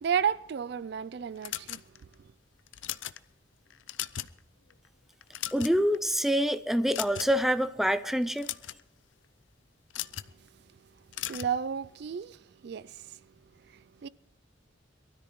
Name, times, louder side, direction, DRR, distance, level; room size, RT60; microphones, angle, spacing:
voice 1, 0.0-1.8 11.3-12.4 12.6-13.1 13.7-14.1, right 8 dB, 60° right, 0.4 m, -32 dB
sound 1, 1.4-2.1 2.7-3.2 3.7-4.4 4.7-4.9 5.2-6.0 6.9-7.5 8.2-8.8 9.9-10.3 11.1-11.6, left 13 dB, 85° left, 0.5 m, -37 dB
voice 2, 5.5-8.5, equal, ahead, 0.5 m, -26 dB
22.5 x 13.0 x 3.1 m
head